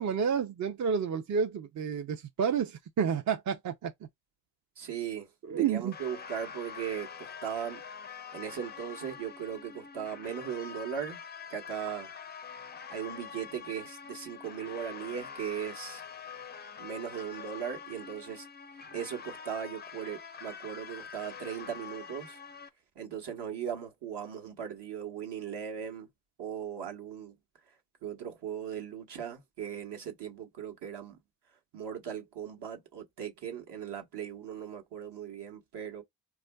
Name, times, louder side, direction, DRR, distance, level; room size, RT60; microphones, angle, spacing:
voice 1, 0.0-3.9 5.5-5.9, right 7 dB, 40° right, 0.5 m, -30 dB
voice 2, 4.8-5.3 5.6-7.8 8.3-11.2 11.5-12.1 12.9-16.0 16.8-18.5 18.9-22.4 22.9-26.1 26.4-27.3 28.0-31.2 31.7-36.0, right 8 dB, 60° right, 1.2 m, -38 dB
sound 1, 5.9-22.7, left 6 dB, 25° left, 0.4 m, -45 dB
4.5 x 2.4 x 2.2 m
supercardioid pair, 65°, 48 cm